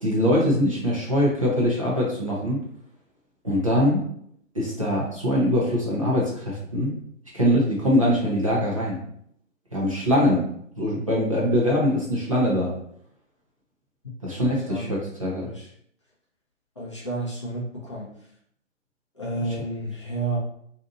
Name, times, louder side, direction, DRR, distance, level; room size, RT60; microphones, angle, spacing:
voice 1, 0.0-2.6 3.4-4.1 4.5-6.9 7.3-9.0 9.7-10.5 10.8-12.8 14.2-15.5, equal, 25° right, -5 dB, 0.5 m, -23 dB
voice 2, 16.8-18.1 19.1-20.4, right 2 dB, 25° left, -6 dB, 0.6 m, -31 dB
2.6 x 2.4 x 3.8 m, 0.67 s
figure-of-eight pair, 145°, 39 cm